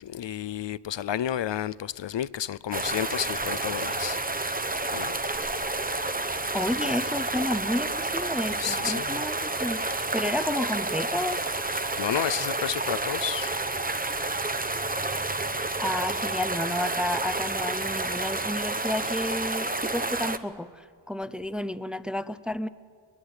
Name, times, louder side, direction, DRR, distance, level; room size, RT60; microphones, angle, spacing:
voice 1, 0.0-4.2 4.9-5.1 8.6-9.2 12.0-13.5, left 10 dB, 65° left, 0.6 m, -31 dB
sound 1, 2.7-20.4, right 2 dB, 20° right, 0.9 m, -30 dB
voice 2, 6.5-11.4 15.8-22.7, left 1 dB, ahead, 0.6 m, -31 dB
22.0 x 21.5 x 8.1 m
wide cardioid pair, 80°, 48 cm